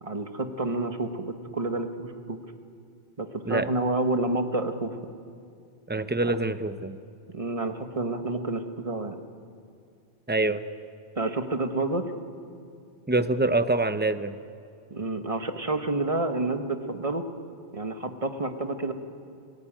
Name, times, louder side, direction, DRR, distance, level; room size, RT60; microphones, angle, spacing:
voice 1, 0.0-2.4 3.2-5.0 6.2-6.4 7.3-9.2 11.1-12.1 14.9-17.2 17.7-18.9, right 2 dB, 30° right, 6 dB, 1.5 m, -29 dB
voice 2, 5.9-7.0 10.3-10.6 13.1-14.3, right 2 dB, 10° right, 10 dB, 0.5 m, -25 dB
29.5 x 18.0 x 8.9 m, 2.4 s
omnidirectional pair, 1.3 m